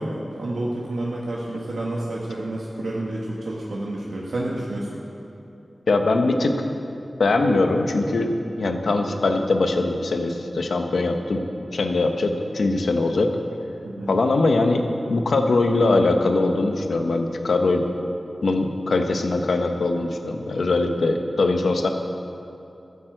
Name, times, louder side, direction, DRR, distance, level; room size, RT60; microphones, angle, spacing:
voice 1, 0.0-5.0 13.8-14.1, right 1 dB, 80° right, -4 dB, 1.5 m, -29 dB
voice 2, 5.9-6.6 7.2-8.3 8.6-11.4 11.7-13.3 14.1-17.8 18.4-21.9, left 2 dB, 85° left, 4 dB, 1.1 m, -21 dB
13.5 x 8.6 x 7.8 m, 2.8 s
wide cardioid pair, 80°, 0 cm